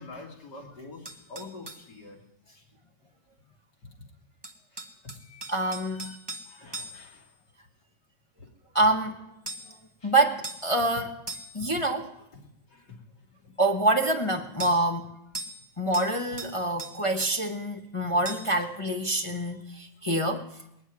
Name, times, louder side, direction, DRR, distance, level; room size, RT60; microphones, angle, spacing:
voice 1, 0.0-2.2 2.5-2.6 4.7-6.2 6.4-7.4 8.4-8.5 10.0-10.1 12.4-13.0 13.4-13.5, left 3 dB, 65° left, 0 dB, 3.2 m, -47 dB
sound 1, 1.1-1.9 4.4-7.2 9.5-9.8 10.4-10.7 11.3-11.7 14.6-14.8 15.3-15.7 15.9-16.5 16.8-17.4 18.3-18.6, right 2 dB, 15° right, 1.0 m, -39 dB
voice 2, 5.5-6.2 8.7-9.2 9.7-9.8 10.0-11.1 11.5-12.1 13.6-15.1 15.8-20.5, right 2 dB, 25° left, 2 dB, 0.8 m, -26 dB
20.5 x 7.2 x 9.6 m, 0.83 s
omnidirectional pair, 2.0 m